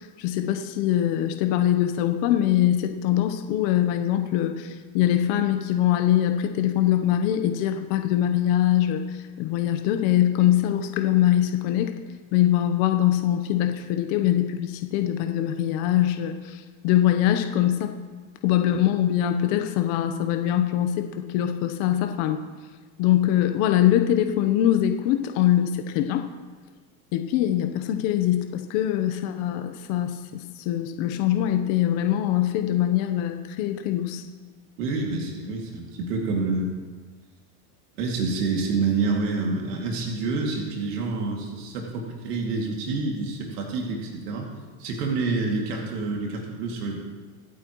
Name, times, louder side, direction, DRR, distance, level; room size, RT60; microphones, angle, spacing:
voice 1, 0.0-11.9 12.3-17.9 18.4-22.4 23.0-26.3 27.1-34.2, left 12 dB, 65° left, 6 dB, 1.1 m, -23 dB
voice 2, 34.8-36.7 38.0-44.5 44.8-47.0, right 3 dB, 85° right, -1 dB, 2.5 m, -27 dB
25.0 x 8.6 x 3.1 m, 1.4 s
supercardioid pair, 110°, 46 cm